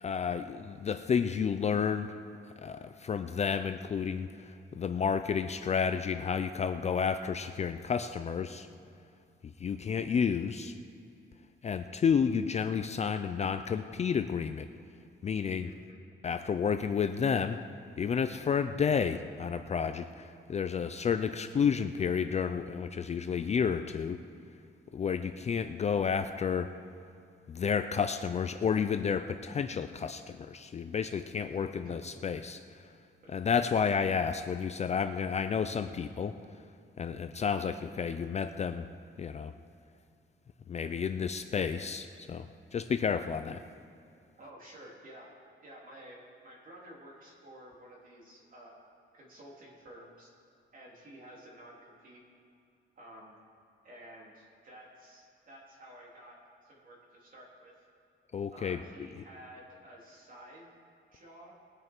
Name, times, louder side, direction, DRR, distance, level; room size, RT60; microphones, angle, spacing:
voice 1, 0.0-2.1 2.6-8.7 9.6-10.7 11.6-14.7 15.2-15.7 16.2-17.6 18.0-24.2 24.9-26.7 27.5-32.6 33.3-36.4 37.0-38.9 39.2-39.5 40.7-43.6 58.3-58.8, left 6 dB, 35° left, 9 dB, 0.4 m, -31 dB
voice 2, 15.6-16.0 31.8-32.2 33.2-33.3 44.4-45.3 45.6-48.8 49.1-50.3 50.7-52.2 53.0-53.4 53.8-57.8 58.5-60.7 61.1-61.5, right 1 dB, 45° right, -3 dB, 3.2 m, -52 dB
20.5 x 9.7 x 4.5 m, 2.5 s
wide cardioid pair, 160°, 20 cm